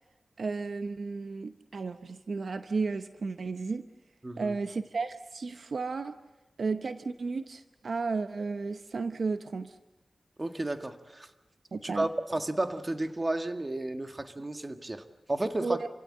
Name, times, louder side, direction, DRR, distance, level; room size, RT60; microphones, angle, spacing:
voice 1, 0.4-3.8 4.4-6.1 6.6-9.8 11.7-12.1 15.6-15.9, right 4 dB, 70° right, 9 dB, 0.8 m, -33 dB
voice 2, 4.2-4.6 10.4-11.3 11.8-15.8, right 2 dB, 30° right, 7 dB, 1.7 m, -32 dB
28.0 x 16.5 x 9.8 m, 1.1 s
wide cardioid pair, 80°, 0 cm